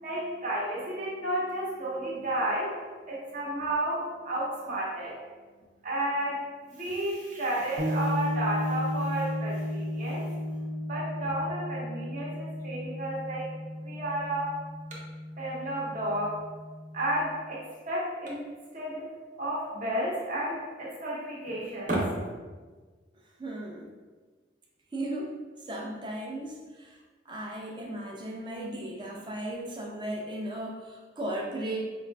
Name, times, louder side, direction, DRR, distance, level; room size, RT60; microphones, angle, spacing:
voice 1, 0.0-2.8 3.1-5.2 5.8-10.3 10.9-14.5 15.4-16.4 16.9-19.1 19.4-22.1, right 1 dB, 45° right, -5 dB, 0.9 m, -32 dB
sound 1, 7.8-17.5, left 1 dB, 80° right, 0.6 m, -34 dB
voice 2, 23.4-23.9 24.9-25.3 25.7-27.0 27.3-31.9, right 1 dB, 25° right, -1 dB, 0.5 m, -36 dB
4.9 x 2.4 x 2.2 m, 1.4 s
head